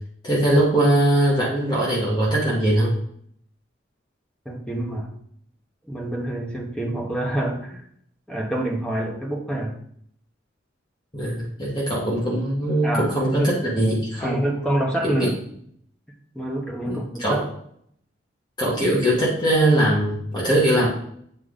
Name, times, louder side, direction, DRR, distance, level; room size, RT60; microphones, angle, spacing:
voice 1, 0.2-2.9 11.1-14.4 15.0-15.3 16.9-17.4 18.6-20.9, right 1 dB, 25° left, -5 dB, 1.7 m, -21 dB
voice 2, 4.4-5.1 5.9-7.8 8.3-9.7 12.8-13.6 14.2-15.4 16.3-17.4, right 1 dB, 5° left, 0 dB, 1.2 m, -27 dB
8.1 x 4.8 x 3.8 m, 0.67 s
head